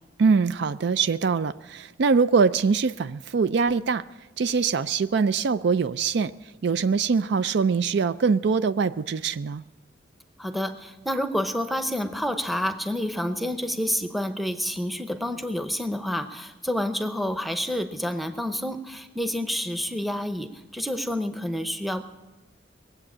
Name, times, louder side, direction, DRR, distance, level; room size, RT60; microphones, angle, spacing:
voice 1, 0.2-4.0 4.4-6.3 6.6-9.6, right 5 dB, 65° right, 14 dB, 0.4 m, -23 dB
voice 2, 10.4-22.0, equal, ahead, 8 dB, 0.8 m, -29 dB
20.0 x 7.9 x 8.5 m, 1.1 s
head